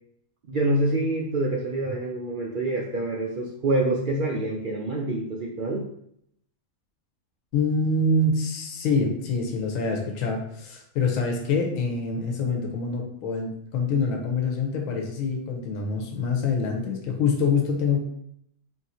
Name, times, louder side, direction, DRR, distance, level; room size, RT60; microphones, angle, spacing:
voice 1, 0.5-5.9, right 2 dB, 75° right, -2 dB, 0.4 m, -26 dB
voice 2, 7.5-18.0, left 3 dB, 75° left, 2 dB, 1.1 m, -25 dB
3.6 x 2.6 x 4.1 m, 0.72 s
omnidirectional pair, 1.5 m